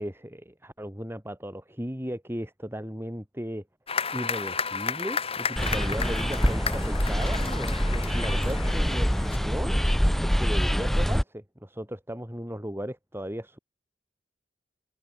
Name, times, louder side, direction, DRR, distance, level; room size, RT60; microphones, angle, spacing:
voice 1, 0.0-3.7 4.1-9.8 10.2-13.6, equal, 15° right, 5.7 m, -36 dB
sound 1, 3.9-9.4, left 5 dB, 35° left, 3.0 m, -33 dB
sound 2, 5.6-11.2, equal, ahead, 0.5 m, -25 dB
head